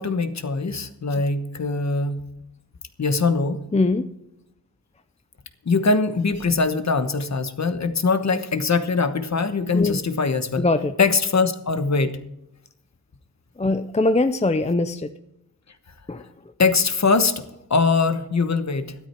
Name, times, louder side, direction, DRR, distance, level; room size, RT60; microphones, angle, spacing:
voice 1, 0.0-2.2 3.0-3.6 5.6-10.6 11.0-12.2 16.6-17.4 17.7-18.9, left 4 dB, 45° left, 9 dB, 1.1 m, -22 dB
voice 2, 3.7-4.1 9.7-10.0 10.6-10.9 13.6-15.1 16.1-16.3, left 2 dB, 20° left, 10 dB, 0.4 m, -22 dB
13.5 x 12.5 x 4.4 m, 0.86 s
wide cardioid pair, 150°, 38 cm